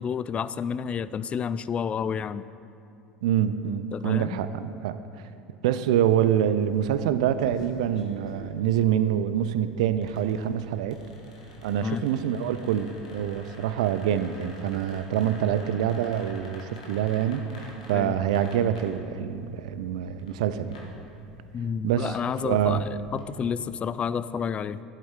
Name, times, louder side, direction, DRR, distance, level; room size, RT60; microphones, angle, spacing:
voice 1, 0.0-2.5 3.9-4.4 11.8-12.1 17.9-18.2 21.5-24.8, left 7 dB, 35° left, 16 dB, 0.3 m, -30 dB
voice 2, 3.2-5.0 5.6-11.0 11.6-20.8 21.8-22.2 22.4-22.8, right 10 dB, 75° right, 12 dB, 0.4 m, -26 dB
sound 1, 6.6-23.5, left 1 dB, 85° left, 1.6 m, -48 dB
11.5 x 8.1 x 3.7 m, 2.6 s
hypercardioid pair, 75°, 4 cm